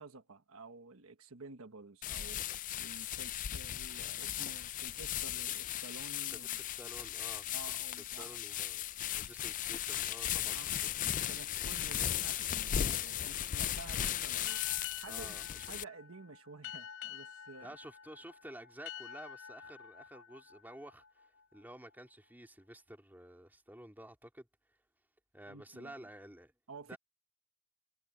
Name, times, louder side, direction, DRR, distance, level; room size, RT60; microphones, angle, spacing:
voice 1, 0.0-2.4 2.8-6.6 7.5-8.4 10.5-10.8 11.3-14.7 14.9-15.4 15.7-17.8 25.5-26.1 26.7-27.0, right 3 dB, 75° right, 1.3 m, -51 dB
sound 1, 2.0-15.8, left 11 dB, 35° left, 0.3 m, -37 dB
voice 2, 6.3-7.5 8.2-8.8 9.2-10.9 15.1-15.7 17.6-24.5 25.3-26.5 26.9-27.0, right 1 dB, 10° right, 3.0 m, -52 dB
sound 2, 14.5-21.7, left 9 dB, 70° left, 3.2 m, -49 dB
head